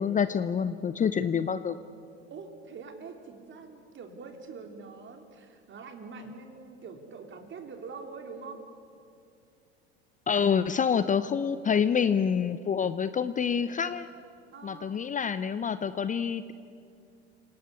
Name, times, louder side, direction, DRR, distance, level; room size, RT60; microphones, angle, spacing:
voice 1, 0.0-1.8 10.3-14.1 14.6-16.5, left 7 dB, 25° left, 13 dB, 0.8 m, -27 dB
voice 2, 2.3-8.7 14.5-15.0, right 4 dB, 35° right, 5 dB, 3.9 m, -44 dB
28.0 x 19.0 x 8.5 m, 2.4 s
hypercardioid pair, 80°, 33 cm